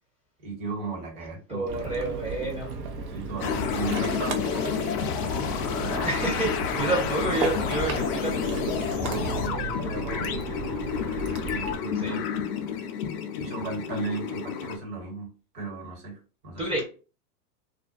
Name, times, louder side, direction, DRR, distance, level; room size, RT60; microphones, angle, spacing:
voice 1, 0.4-1.7 3.1-5.0 5.7-6.1 6.7-7.0 9.0-10.8 11.3-12.2 12.7-12.9 13.4-16.2 16.4-16.7, right 3 dB, 45° right, 1.4 m, -36 dB
voice 2, 1.5-2.7 6.0-8.5 11.9-12.2 16.6-16.9, right 1 dB, 10° right, 0.7 m, -29 dB
Ocean, 1.7-11.8, right 5 dB, 60° right, 0.7 m, -35 dB
sound 1, 3.4-14.8, left 7 dB, 40° left, 0.5 m, -30 dB
2.4 x 2.2 x 2.4 m
hypercardioid pair, 110°, 49 cm